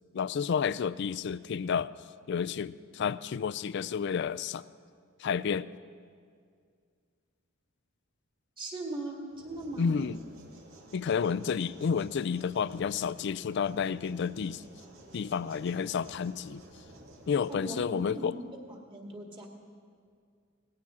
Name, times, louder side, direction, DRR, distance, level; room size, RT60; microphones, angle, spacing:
voice 1, 0.0-1.9 2.3-4.6 5.2-5.7 9.8-10.2 10.9-14.6 15.1-16.6 17.3-18.4, left 6 dB, 55° left, 17 dB, 0.4 m, -30 dB
voice 2, 8.6-10.0 17.5-18.6 18.9-19.5, right 2 dB, 25° right, 1 dB, 1.9 m, -39 dB
sound 1, 9.3-17.7, right 1 dB, 80° right, 2.1 m, -53 dB
19.0 x 17.0 x 3.7 m, 2.1 s
head